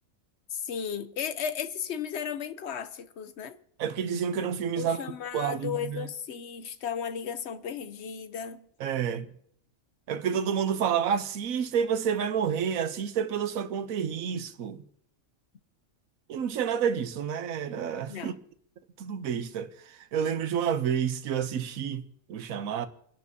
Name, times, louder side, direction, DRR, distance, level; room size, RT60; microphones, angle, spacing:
voice 1, 0.5-3.6 4.8-8.7 18.1-18.4, left 8 dB, 60° left, 1.0 m, -35 dB
voice 2, 3.8-5.0 5.3-6.0 8.8-9.3 10.1-14.8 16.3-18.3 19.0-19.7 20.1-22.0 22.3-22.9, right 8 dB, 85° right, 1.2 m, -29 dB
29.5 x 11.0 x 2.8 m
omnidirectional pair, 1.4 m